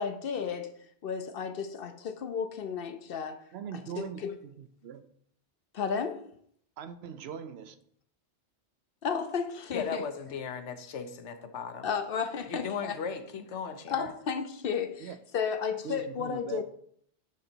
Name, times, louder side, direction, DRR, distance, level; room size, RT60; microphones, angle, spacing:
voice 1, 0.0-3.4 3.7-4.3 5.7-6.3 9.0-10.0 11.8-13.0 13.9-16.6, left 6 dB, 60° left, 0.8 m, -33 dB
voice 2, 3.5-5.1 6.8-7.8 15.0-15.2 15.8-16.6, right 8 dB, 70° right, 0.8 m, -41 dB
voice 3, 9.7-11.9 12.5-14.0, left 6 dB, 80° left, 1.1 m, -37 dB
9.6 x 3.9 x 4.4 m
omnidirectional pair, 1.2 m